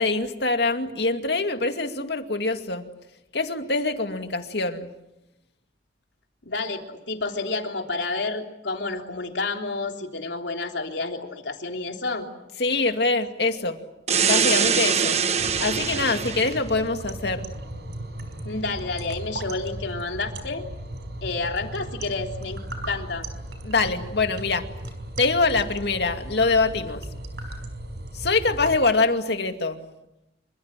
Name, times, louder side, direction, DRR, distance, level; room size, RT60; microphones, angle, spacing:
voice 1, 0.0-2.9 3.3-4.9 12.6-13.8 14.2-15.2 15.6-17.5 23.6-24.7 25.2-27.1 28.1-29.8, left 3 dB, 65° left, 6 dB, 2.4 m, -24 dB
voice 2, 6.4-12.3 18.4-20.6 21.2-22.6 22.9-23.3, left 3 dB, 85° left, 3 dB, 3.4 m, -30 dB
sound 1, 14.1-16.6, right 6 dB, 35° right, 1.3 m, -23 dB
sound 2, 15.4-28.8, right 1 dB, 70° right, 4.9 m, -36 dB
27.0 x 25.0 x 7.6 m, 0.90 s
head